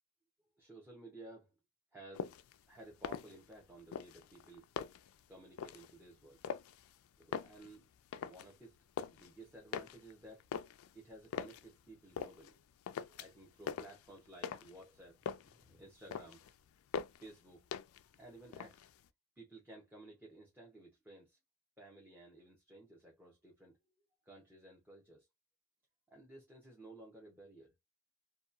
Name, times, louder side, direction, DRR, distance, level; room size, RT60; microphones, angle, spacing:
voice 1, 0.6-1.5 1.9-2.4 2.7-4.7 5.3-6.4 7.2-7.9 8.2-8.8 9.0-10.4 10.9-12.6 13.1-16.4 17.2-17.6 18.1-18.9 19.4-21.4 21.8-24.0 24.2-25.3 26.1-27.7, right 2 dB, 10° right, 0.7 m, -55 dB
sound 1, 2.1-2.5 2.9-3.6 3.9-5.2 5.6-5.9 6.4-6.9 7.2-8.5 8.8-9.3 9.7-11.7 12.2-12.6 12.9-13.4 13.7-14.8 15.1-15.6 15.9-16.5 16.9-17.3 17.7-18.1 18.4-19.1, left 7 dB, 75° left, 0.3 m, -42 dB
2.8 x 2.2 x 2.4 m
head